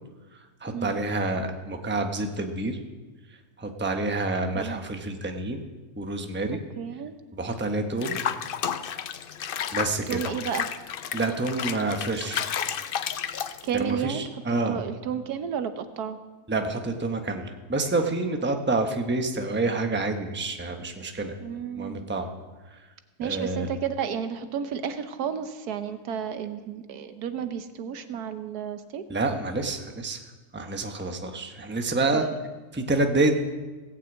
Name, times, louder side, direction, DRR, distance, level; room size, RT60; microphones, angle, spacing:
voice 1, 0.6-2.8 3.6-5.6 6.0-6.6 7.3-8.2 9.7-10.2 11.1-12.4 13.7-14.8 16.5-21.3 21.8-22.3 22.7-22.8 23.2-23.7 29.1-30.2 30.5-32.3 32.7-33.3, right 2 dB, 10° right, 4 dB, 0.9 m, -28 dB
voice 2, 6.5-7.1 10.1-10.7 13.6-14.2 14.5-16.2 21.4-22.0 23.2-29.0 32.1-32.3, right 8 dB, 75° right, 10 dB, 1.3 m, -32 dB
Water / Bathtub (filling or washing), 8.0-13.9, left 8 dB, 80° left, 0.4 m, -32 dB
18.0 x 6.1 x 8.3 m, 1.3 s
omnidirectional pair, 1.7 m